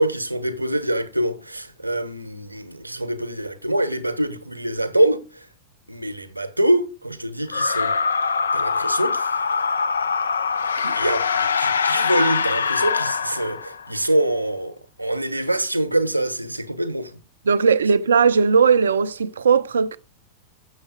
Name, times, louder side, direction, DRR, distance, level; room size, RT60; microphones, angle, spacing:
voice 1, 0.0-5.2 5.9-7.9 8.5-9.3 10.9-17.2, right 1 dB, 85° right, 0.9 m, -24 dB
sound 1, 7.5-13.9, left 5 dB, 70° left, 0.4 m, -23 dB
voice 2, 17.5-20.0, right 5 dB, 70° right, 0.4 m, -18 dB
7.1 x 6.5 x 5.0 m
figure-of-eight pair, 90°, 0 cm